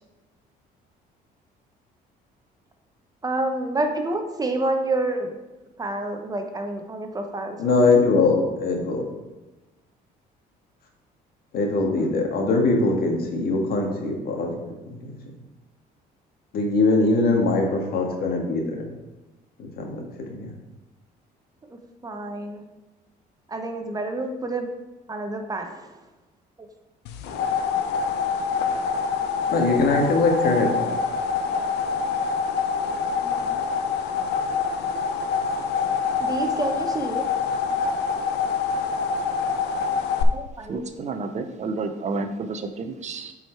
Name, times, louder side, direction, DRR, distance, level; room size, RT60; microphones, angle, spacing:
voice 1, 3.2-5.3 5.8-7.6 11.8-12.1 21.7-22.6 23.5-24.7 25.1-26.0 33.2-33.6 36.2-37.3 40.1-40.8, right 2 dB, 20° right, 5 dB, 0.9 m, -29 dB
voice 2, 7.6-9.0 11.5-14.6 14.9-15.1 16.5-18.9 19.6-20.5 29.5-31.0, left 3 dB, 65° left, 1 dB, 1.8 m, -22 dB
sound 1, 27.1-40.2, left 5 dB, 80° left, 0.7 m, -26 dB
voice 3, 40.7-43.3, right 3 dB, 45° right, 8 dB, 0.7 m, -30 dB
7.8 x 4.8 x 4.5 m, 1.1 s
cardioid pair, 110°, 17 cm